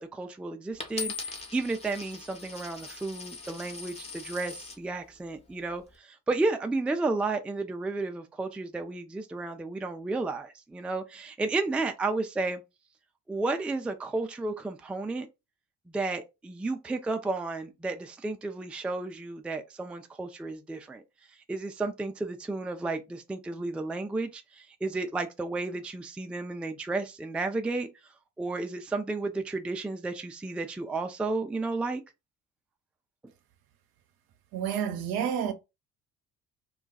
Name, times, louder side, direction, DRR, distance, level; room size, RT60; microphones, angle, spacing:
voice 1, 0.0-12.6 13.3-15.3 15.9-21.0 21.5-27.9 28.4-32.0, right 3 dB, 5° right, 0.4 m, -32 dB
Coin (dropping), 0.8-4.8 5.5-5.9, left 4 dB, 15° left, 0.9 m, -40 dB
voice 2, 34.5-35.5, right 8 dB, 60° right, 0.7 m, -29 dB
2.3 x 2.3 x 3.9 m
hypercardioid pair, 50°, 41 cm